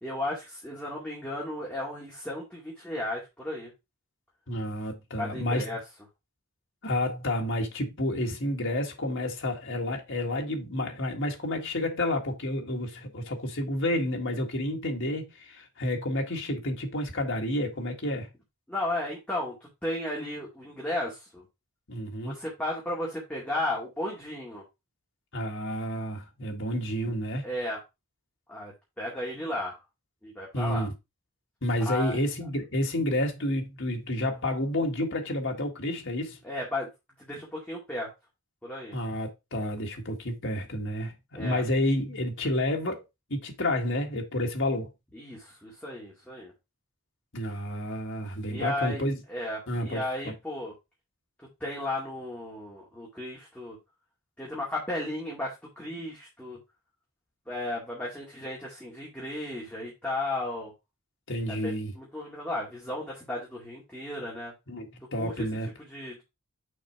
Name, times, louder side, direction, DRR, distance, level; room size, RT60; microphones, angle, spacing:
voice 1, 0.0-3.7 5.2-5.8 18.7-19.6 19.8-21.4 22.2-24.6 27.4-27.8 28.5-29.8 30.2-30.9 31.9-32.2 36.4-36.9 37.2-38.1 38.6-39.0 41.3-41.6 45.1-46.5 48.5-49.0 49.3-50.7 51.6-53.8 54.4-56.6 57.5-60.7 61.5-64.5 65.2-65.4 65.9-66.2, left 1 dB, 5° left, 2.1 m, -34 dB
voice 2, 4.5-5.8 6.8-18.3 21.9-22.3 25.3-27.5 30.5-30.9 31.6-36.4 38.9-43.0 43.3-44.9 47.3-49.2 49.7-50.3 61.3-61.9 64.7-65.7, left 1 dB, 55° left, 1.8 m, -30 dB
6.3 x 4.3 x 4.6 m
head